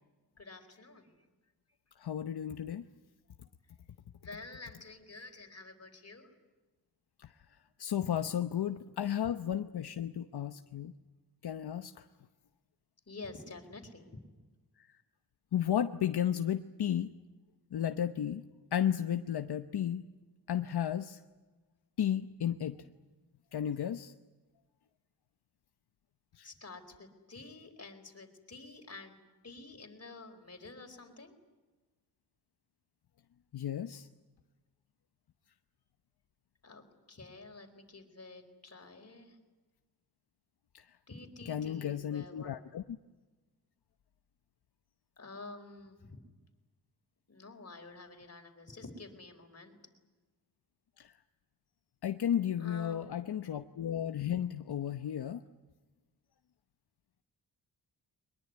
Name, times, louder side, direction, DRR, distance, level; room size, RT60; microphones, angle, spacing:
voice 1, 0.3-1.3 4.2-6.3 8.4-8.6 13.1-14.2 26.4-29.2 29.4-31.4 36.6-39.4 41.1-42.5 45.2-46.2 47.3-49.8 52.6-53.2, left 3 dB, 40° left, 5 dB, 4.3 m, -49 dB
voice 2, 2.0-2.9 7.2-7.3 7.8-10.9 11.4-12.1 14.8-14.9 15.5-17.1 17.7-18.4 18.7-20.1 20.5-21.2 22.0-22.8 23.5-24.1 26.4-26.5 33.5-34.1 40.7-40.9 41.5-42.8 51.0-51.1 52.0-55.4, left 10 dB, 75° left, 9 dB, 0.9 m, -33 dB
23.0 x 21.0 x 9.6 m, 1.2 s
cardioid pair, 80°, 39 cm